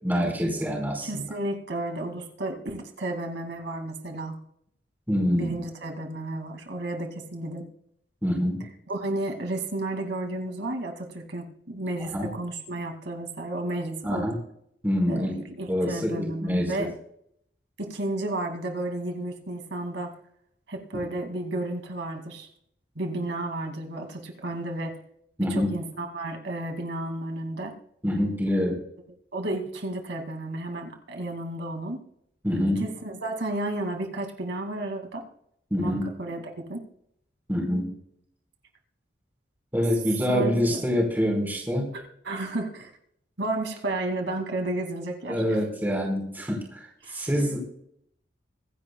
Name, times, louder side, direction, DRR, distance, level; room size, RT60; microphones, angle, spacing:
voice 1, 0.0-1.2 5.1-5.5 8.2-8.6 12.1-12.3 14.0-14.4 14.8-15.3 15.7-16.9 20.9-21.0 25.4-25.7 28.0-28.8 32.4-32.8 35.7-36.1 37.5-37.9 39.7-41.9 45.3-47.6, equal, 10° right, -1 dB, 4.7 m, -26 dB
voice 2, 1.0-4.4 5.4-7.7 8.9-14.3 15.1-16.9 17.8-20.1 20.7-22.5 23.0-24.9 25.5-27.7 29.3-32.0 32.8-35.2 35.8-35.9 36.2-36.4 36.7-36.8 40.3-40.8 42.2-42.9 43.4-45.6 47.0-47.3, right 1 dB, 85° right, 4 dB, 2.4 m, -32 dB
25.0 x 10.5 x 2.3 m, 0.69 s
head